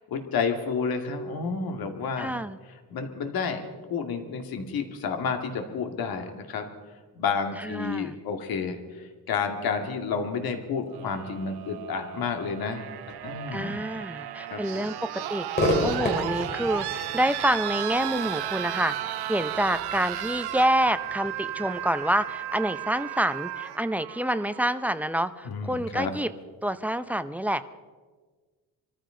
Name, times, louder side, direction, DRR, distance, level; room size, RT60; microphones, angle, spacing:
voice 1, 0.1-2.4 2.9-3.6 3.9-6.7 7.1-13.8 14.5-14.6 25.4-26.1, left 5 dB, 70° left, 5 dB, 2.1 m, -30 dB
voice 2, 2.2-2.6 7.6-8.1 13.5-26.3 26.6-27.6, right 1 dB, 5° right, 11 dB, 0.6 m, -27 dB
sound 1, 10.9-24.9 26.1-26.2, right 13 dB, 85° right, 0.9 m, -34 dB
Crowd / Fireworks, 15.5-22.9, left 1 dB, 25° left, 4.1 m, -33 dB
25.0 x 14.5 x 3.8 m, 1.4 s
cardioid pair, 120°, 38 cm